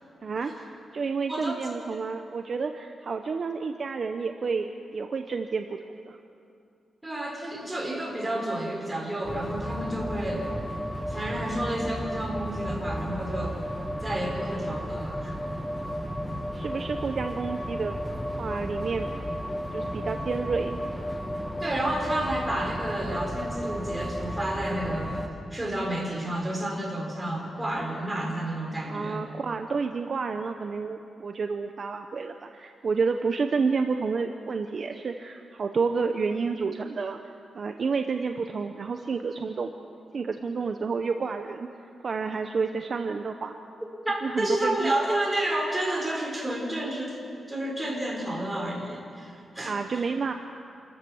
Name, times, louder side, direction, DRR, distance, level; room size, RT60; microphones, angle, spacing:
voice 1, 0.2-0.5 0.9-5.8 6.1-6.2 16.5-18.0 18.4-19.1 19.7-20.8 28.9-37.2 37.5-39.7 40.1-41.7 42.0-43.5 44.2-44.9 49.6-50.3, right 5 dB, 45° right, 6 dB, 0.8 m, -30 dB
voice 2, 1.3-1.6 7.0-10.5 11.1-13.6 14.0-15.3 21.6-29.2 44.0-47.2 47.5-50.1, right 1 dB, 10° right, -1 dB, 4.5 m, -30 dB
sound 1, 9.2-25.3, equal, 5° left, 1.3 m, -33 dB
28.0 x 14.0 x 7.2 m, 2.4 s
wide cardioid pair, 145°, 0 cm